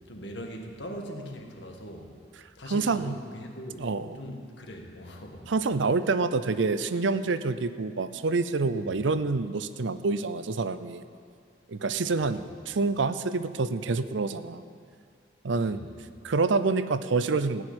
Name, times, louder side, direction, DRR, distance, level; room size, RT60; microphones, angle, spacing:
voice 1, 0.1-2.1 2.6-3.9 4.1-5.4 8.7-9.0 12.0-12.3 15.6-15.8, equal, 70° left, 2 dB, 1.6 m, -41 dB
voice 2, 2.7-3.2 3.8-4.2 5.5-11.0 11.7-14.6 15.4-15.9 16.2-17.6, right 3 dB, 85° right, 12 dB, 0.6 m, -27 dB
16.0 x 6.4 x 9.6 m, 2.3 s
head